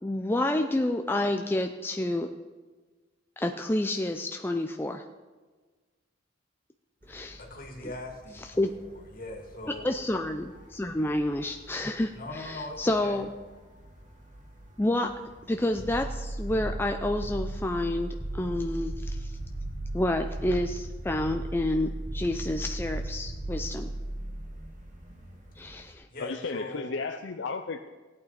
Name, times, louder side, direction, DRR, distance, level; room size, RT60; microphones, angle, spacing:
voice 1, 0.0-2.3 3.4-5.0 7.1-7.4 7.8-7.9 8.6-8.7 9.8-13.3 14.8-15.1 15.5-19.4 19.9-23.9 25.6-26.1, left 1 dB, 10° left, 5 dB, 0.4 m, -29 dB
sound 1, 7.0-25.9, right 1 dB, 40° right, 1.8 m, -52 dB
voice 2, 7.5-9.9 12.1-13.2 26.1-26.9, left 1 dB, 50° left, 1 dB, 2.3 m, -41 dB
sound 2, 15.7-24.8, right 1 dB, 75° right, 2.9 m, -35 dB
voice 3, 26.2-27.9, left 4 dB, 65° left, 5 dB, 0.6 m, -34 dB
16.5 x 8.9 x 4.2 m, 1.3 s
head